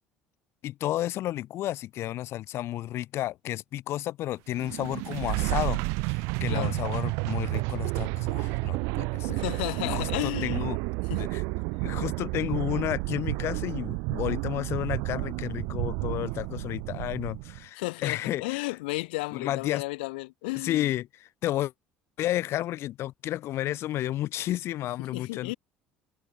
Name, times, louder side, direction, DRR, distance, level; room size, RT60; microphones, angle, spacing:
voice 1, 0.6-5.8 6.1-9.4 9.8-10.8 11.2-11.4 11.8-18.6 19.3-19.8 20.5-21.7 22.2-25.5, left 14 dB, 50° left, 2.7 m, -32 dB
sound 1, 4.5-17.6, right 30 dB, 60° right, 1.9 m, -31 dB
voice 2, 6.5-6.8 9.3-10.6 11.1-11.3 17.8-20.9 25.0-25.5, left 23 dB, 65° left, 4.9 m, -33 dB
figure-of-eight pair, 60°, 6 cm